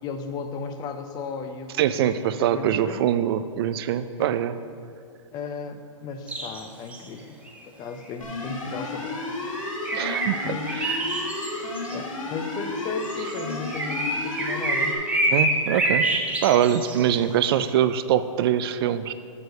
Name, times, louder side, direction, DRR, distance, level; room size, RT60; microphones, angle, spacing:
voice 1, 0.0-3.0 4.2-4.3 5.3-7.3 7.8-9.2 10.4-10.7 11.9-15.0, left 5 dB, 25° left, 8 dB, 0.5 m, -35 dB
voice 2, 1.8-4.6 9.9-10.9 15.3-16.1 16.4-19.1, right 10 dB, 45° right, 12 dB, 0.4 m, -23 dB
sound 1, 6.3-6.6 6.9-7.0 7.5-7.6 9.5-12.0 12.8-17.0 17.4-17.5, right 2 dB, 5° right, 0.9 m, -27 dB
sound 2, 8.2-14.9, left 3 dB, 80° left, 2.0 m, -32 dB
7.0 x 6.3 x 6.5 m, 2.4 s
hypercardioid pair, 135°, 17 cm